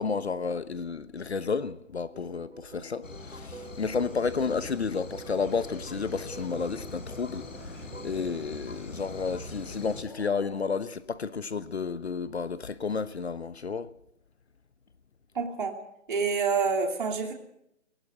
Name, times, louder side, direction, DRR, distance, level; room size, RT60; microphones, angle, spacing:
voice 1, 0.0-13.9, left 5 dB, 55° left, 1.1 m, -31 dB
sound 1, 2.1-8.5, right 3 dB, 65° right, 4.8 m, -49 dB
sound 2, 3.0-10.0, left 2 dB, 80° left, 5.8 m, -42 dB
sound 3, 10.0-10.6, left 4 dB, 35° left, 4.8 m, -48 dB
voice 2, 15.3-15.8 16.1-17.3, right 5 dB, 40° right, 2.8 m, -27 dB
19.0 x 17.5 x 7.9 m
hypercardioid pair, 170°, 38 cm